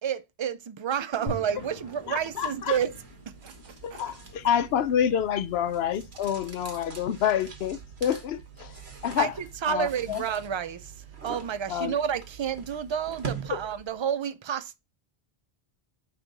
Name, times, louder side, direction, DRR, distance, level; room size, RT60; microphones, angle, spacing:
voice 1, 0.0-2.9 3.4-3.5 3.9-4.2 9.2-10.9 11.2-14.8, right 8 dB, 50° right, 0.3 m, -30 dB
sound 1, 1.3-11.5, left 1 dB, 30° left, 4.2 m, -47 dB
sound 2, 1.6-14.0, right 6 dB, 80° right, 1.6 m, -44 dB
voice 2, 2.1-2.8 3.8-8.7 9.0-9.3 9.7-10.2 11.7-11.9 13.5-13.6, left 9 dB, 75° left, 0.8 m, -28 dB
9.4 x 3.4 x 4.0 m
omnidirectional pair, 1.1 m